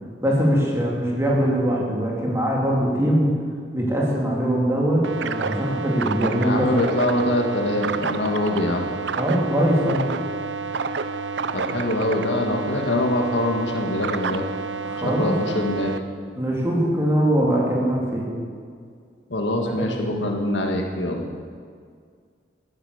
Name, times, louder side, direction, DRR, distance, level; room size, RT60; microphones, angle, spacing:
voice 1, 0.2-3.3 3.7-7.0 9.1-10.1 14.8-15.4 16.4-18.3 19.8-20.1, equal, 15° right, -4 dB, 3.2 m, -22 dB
sound 1, 5.0-16.0, right 4 dB, 85° right, 0.6 m, -29 dB
voice 2, 6.3-8.9 11.5-14.4 15.0-16.0 19.3-21.2, left 1 dB, 90° left, 2 dB, 1.8 m, -24 dB
14.5 x 10.0 x 8.1 m, 2.1 s
head